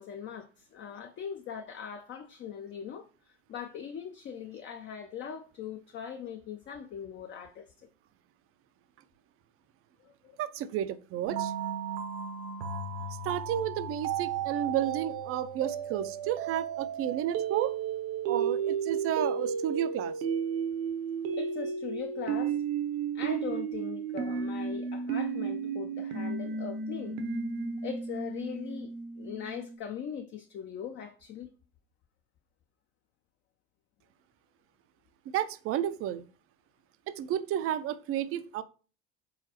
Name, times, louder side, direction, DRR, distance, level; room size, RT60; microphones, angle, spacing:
voice 1, 0.0-7.9 10.0-10.4 21.3-22.6 23.1-27.2 27.8-31.5, left 7 dB, 35° left, 0.5 m, -40 dB
voice 2, 10.4-11.5 13.2-17.7 18.3-20.1 35.3-36.2 37.1-38.6, right 11 dB, 40° right, 0.5 m, -32 dB
sound 1, 11.3-29.8, right 6 dB, 65° right, 0.8 m, -33 dB
4.0 x 3.9 x 2.8 m
hypercardioid pair, 70°, 33 cm